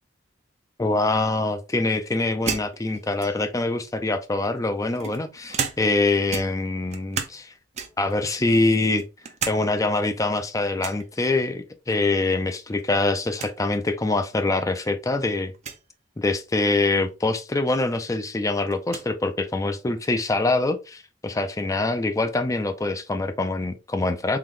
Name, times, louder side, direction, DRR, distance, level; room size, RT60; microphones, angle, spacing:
voice 1, 0.8-7.5 8.0-9.0 9.5-15.5 16.2-24.4, left 2 dB, 15° left, 0.4 m, -24 dB
sound 1, 2.5-3.6 4.4-6.0 6.3-7.4 7.7-8.1 8.6-9.6 9.9-10.0 10.8-11.1 12.5-12.8 13.1-13.2 13.4-13.6 14.4-14.5 15.5-15.8 17.5-17.6 17.9-19.1, right 6 dB, 35° right, 0.5 m, -33 dB
3.8 x 2.9 x 3.1 m
head